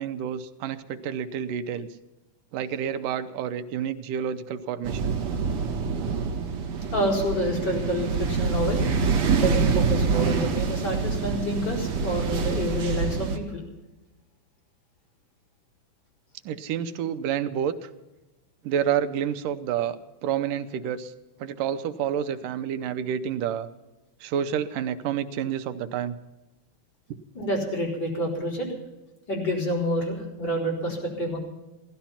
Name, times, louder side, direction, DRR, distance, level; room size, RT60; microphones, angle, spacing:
voice 1, 0.0-1.9 2.5-5.2 16.5-17.9 18.6-21.1 21.4-23.7 24.2-26.2, right 9 dB, 90° right, 9 dB, 2.4 m, -29 dB
sound 1, 4.8-13.4, right 5 dB, 60° right, 2.6 m, -26 dB
voice 2, 6.9-8.8 9.3-13.6 27.3-28.7 29.3-31.4, equal, 30° left, -4 dB, 5.0 m, -28 dB
16.5 x 13.5 x 5.8 m, 1.1 s
omnidirectional pair, 3.6 m